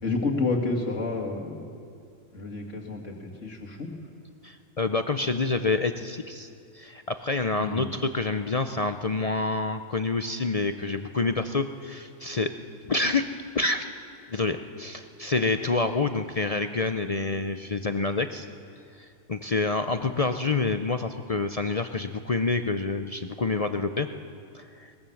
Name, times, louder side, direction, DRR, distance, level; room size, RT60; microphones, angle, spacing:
voice 1, 0.0-1.7 2.3-3.9 7.6-7.9 19.9-20.0, left 3 dB, 60° left, 1 dB, 2.6 m, -30 dB
voice 2, 4.4-6.5 6.7-12.5 12.8-13.3 13.5-13.9 14.3-18.5 19.0-24.1 24.5-24.9, left 3 dB, 45° left, 8 dB, 0.5 m, -27 dB
22.0 x 20.0 x 7.1 m, 2.4 s
omnidirectional pair, 1.5 m